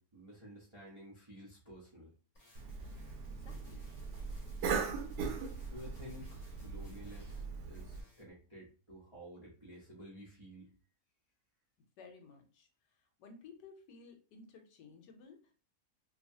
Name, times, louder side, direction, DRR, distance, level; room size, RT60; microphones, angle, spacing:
voice 1, 0.0-2.1 5.7-10.7, equal, 35° right, -6 dB, 0.5 m, -52 dB
sound 1, 2.3-7.5 7.7-8.3, left 3 dB, 30° left, 0.8 m, -61 dB
Cough, 2.6-8.0, right 5 dB, 75° right, 1.1 m, -40 dB
voice 2, 3.3-3.9 4.3-4.4 12.0-15.5, left 4 dB, 80° left, 4 dB, 1.2 m, -56 dB
2.8 x 2.3 x 2.6 m, 0.38 s
omnidirectional pair, 1.9 m